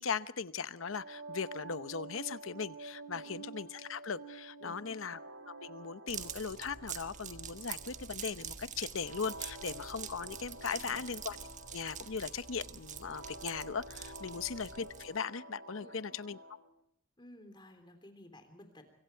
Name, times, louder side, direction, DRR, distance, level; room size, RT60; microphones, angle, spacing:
voice 1, 0.0-5.2 5.5-11.4 11.7-16.4, left 6 dB, 75° left, 14 dB, 0.8 m, -39 dB
sound 1, 0.8-16.7, right 2 dB, 65° right, 2.3 m, -50 dB
voice 2, 4.6-5.0 10.7-11.0 15.8-16.2 17.2-18.9, left 1 dB, 20° left, 7 dB, 3.5 m, -55 dB
sound 2, 6.1-15.2, right 8 dB, 35° right, 1.4 m, -46 dB
25.0 x 24.0 x 4.6 m, 0.64 s
head